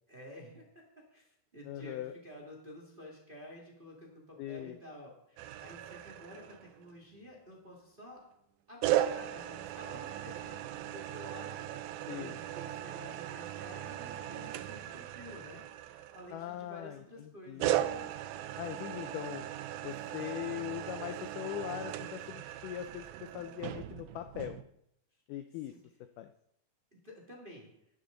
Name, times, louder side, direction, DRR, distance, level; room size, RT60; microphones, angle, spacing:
voice 1, 0.1-0.8 1.1-8.2 8.7-11.5 12.0-17.7 18.7-19.1 19.9-20.1 25.7-25.8 26.9-27.7, equal, 20° right, -1 dB, 1.5 m, -51 dB
voice 2, 1.7-2.1 4.4-4.8 12.1-12.4 16.3-18.1 18.6-19.5 19.8-24.6 25.3-25.7 26.2-26.3, left 12 dB, 90° left, 8 dB, 1.8 m, -41 dB
sound 1, 5.4-6.9 8.8-16.6 17.6-24.6, right 12 dB, 80° right, 2.4 m, -37 dB
11.5 x 11.0 x 3.8 m, 0.77 s
omnidirectional pair, 4.3 m